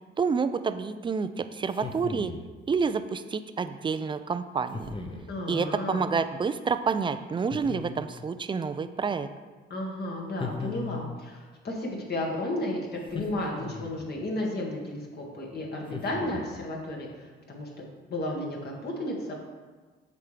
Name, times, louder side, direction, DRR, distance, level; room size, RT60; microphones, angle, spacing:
voice 1, 0.2-2.3 2.7-5.0 5.5-9.3, right 5 dB, 25° right, 11 dB, 0.4 m, -28 dB
sound 1, 1.7-2.5 4.7-5.3 7.5-8.3 10.4-11.3 13.1-14.1 15.9-16.7, left 4 dB, 25° left, 0.9 m, -38 dB
voice 2, 5.3-6.0 9.7-17.8 18.1-19.3, left 1 dB, 55° left, -2 dB, 1.9 m, -33 dB
8.3 x 5.9 x 3.4 m, 1.3 s
cardioid pair, 90°, 20 cm